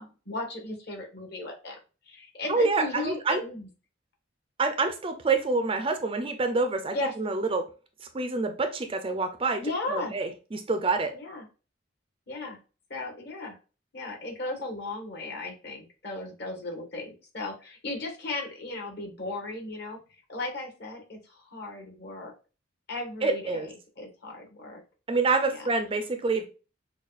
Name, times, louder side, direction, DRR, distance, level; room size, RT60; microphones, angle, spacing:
voice 1, 0.0-1.8 2.0-3.7 6.9-7.1 9.6-10.2 11.1-11.4 12.3-12.6 12.9-13.6 13.9-20.0 20.3-22.3 22.9-24.8 25.5-25.7, left 2 dB, 55° left, 1 dB, 1.4 m, -36 dB
voice 2, 2.5-3.4 4.6-7.6 8.1-9.6 9.9-11.1 23.2-23.7 25.1-26.4, right 3 dB, 25° right, 7 dB, 0.4 m, -27 dB
6.2 x 2.3 x 2.4 m, 0.33 s
head